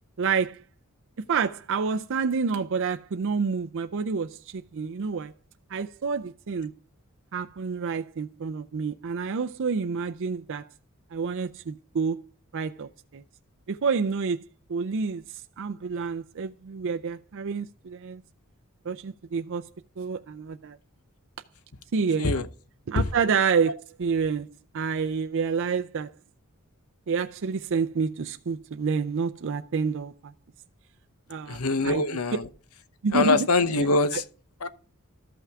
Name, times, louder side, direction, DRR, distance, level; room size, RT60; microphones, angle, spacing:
voice 1, 0.2-0.6 1.2-5.3 5.7-6.7 7.3-10.6 11.1-12.2 12.5-13.2 13.7-14.4 14.7-18.2 18.9-19.6 20.0-20.8 21.9-22.3 22.9-26.1 27.1-30.3 31.3-32.0 33.0-33.5 34.1-34.2, right 5 dB, 60° right, 0.5 m, -28 dB
voice 2, 31.5-32.5 33.1-34.2 34.6-34.7, left 3 dB, 85° left, 0.9 m, -23 dB
13.5 x 5.7 x 3.5 m
head